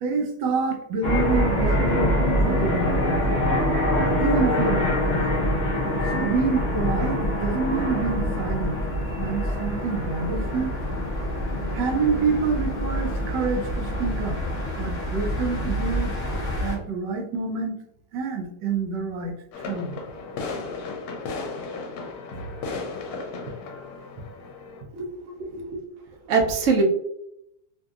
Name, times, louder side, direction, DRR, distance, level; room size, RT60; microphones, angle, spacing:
voice 1, 0.0-3.1 4.2-5.0 6.1-8.8 9.2-10.7 11.7-14.4 14.8-16.1 16.6-17.8 18.1-19.3 19.7-20.0 22.3-22.5, right 4 dB, 85° right, 2 dB, 1.2 m, -27 dB
sound 1, 1.0-16.8, equal, 50° left, 0.5 m, -25 dB
sound 2, 19.5-24.8, left 4 dB, 70° left, 1.1 m, -35 dB
voice 2, 24.9-25.8 26.3-26.8, right 4 dB, 65° right, 1 dB, 0.8 m, -24 dB
2.9 x 2.6 x 2.3 m, 0.77 s
omnidirectional pair, 1.8 m